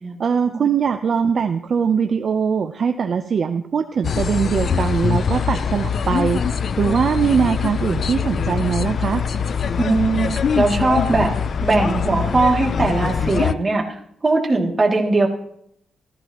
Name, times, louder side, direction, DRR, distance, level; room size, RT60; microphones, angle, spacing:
voice 1, 0.2-9.2, right 6 dB, 50° right, 7 dB, 0.6 m, -21 dB
sound 1, 4.0-13.5, left 6 dB, 50° left, 0.4 m, -23 dB
voice 2, 9.8-10.3 10.5-11.3 11.6-14.0 14.2-15.3, right 3 dB, 25° right, -1 dB, 2.5 m, -19 dB
14.5 x 14.5 x 3.0 m, 0.69 s
wide cardioid pair, 145°, 0 cm